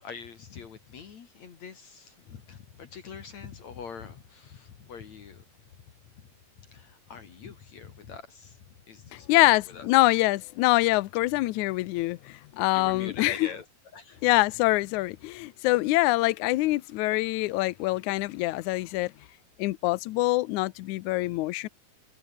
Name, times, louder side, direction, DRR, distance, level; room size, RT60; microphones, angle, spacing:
voice 1, 0.0-5.4 6.7-9.9 12.7-13.6 13.9-14.2, left 6 dB, 55° left, 3.3 m, -43 dB
voice 2, 9.1-13.5 14.2-19.1 19.6-21.7, left 19 dB, 75° left, 1.9 m, -25 dB
omnidirectional pair, 4.0 m